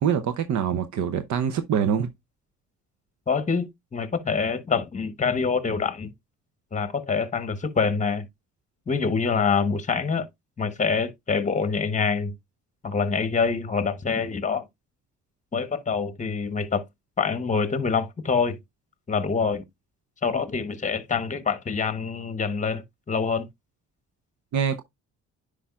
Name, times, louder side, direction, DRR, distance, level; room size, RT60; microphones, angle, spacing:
voice 1, 0.0-2.1 24.5-24.8, right 8 dB, 70° right, 0.7 m, -24 dB
voice 2, 3.3-6.1 6.7-8.3 8.9-10.3 10.6-12.3 12.8-14.6 15.5-16.8 17.2-18.6 19.1-19.6 20.2-23.5, left 5 dB, 25° left, 1.0 m, -25 dB
10.0 x 4.9 x 2.3 m
cardioid pair, 90°, 30 cm